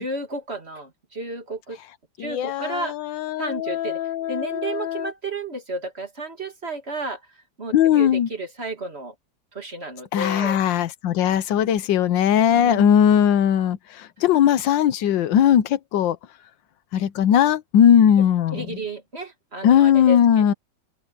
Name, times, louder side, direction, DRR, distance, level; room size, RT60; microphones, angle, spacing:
voice 1, 0.0-1.8 2.2-2.9 3.4-4.0 4.3-7.2 7.6-9.1 9.5-10.6 12.5-12.9 18.5-20.5, right 2 dB, 35° right, 2.6 m, -32 dB
voice 2, 2.2-5.1 7.7-8.3 10.1-16.2 16.9-18.8 19.6-20.5, left 9 dB, 90° left, 1.6 m, -19 dB
omnidirectional pair, 2.0 m